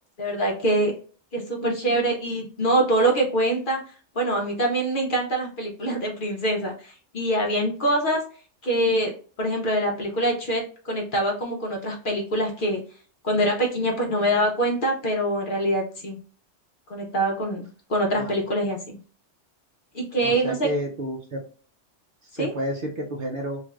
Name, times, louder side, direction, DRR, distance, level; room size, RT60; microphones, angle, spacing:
voice 1, 0.2-0.9 1.3-3.8 4.2-8.2 8.6-9.1 9.4-12.8 13.2-16.2 16.9-19.0 19.9-20.7 22.4-22.5, right 1 dB, 55° left, 0 dB, 0.7 m, -24 dB
voice 2, 20.2-21.4 22.2-23.6, equal, 55° right, 0 dB, 0.7 m, -30 dB
3.2 x 2.5 x 2.3 m, 0.41 s
omnidirectional pair, 1.3 m